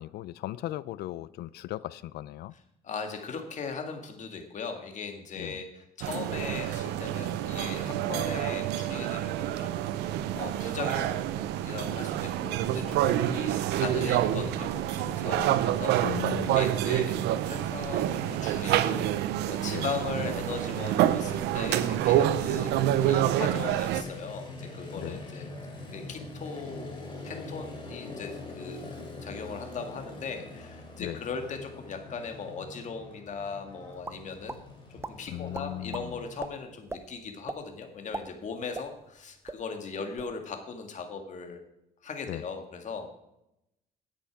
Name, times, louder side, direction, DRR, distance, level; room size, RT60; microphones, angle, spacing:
voice 1, 0.0-2.5 5.4-5.6 14.0-14.1 16.0-16.6 19.7-19.9 22.5-22.6 25.0-25.2 31.0-31.2 35.3-36.2 42.3-42.4, left 15 dB, 70° left, 0.5 m, -37 dB
voice 2, 2.8-16.0 16.4-17.2 17.5-25.5 25.9-34.6 35.1-41.6 42.0-43.1, left 5 dB, 45° left, 1.9 m, -39 dB
sound 1, 6.0-24.0, right 12 dB, 85° right, 0.6 m, -27 dB
Motorcycle, 23.5-36.5, left 2 dB, 25° left, 3.3 m, -44 dB
sound 2, 34.0-34.6 35.0-35.1 35.5-36.0 36.4-36.5 36.9-37.0 37.5-37.6 38.0-39.2 39.5-39.6 40.0-40.3, right 3 dB, 15° right, 0.6 m, -38 dB
10.5 x 8.3 x 4.8 m
cardioid pair, 110°, 17 cm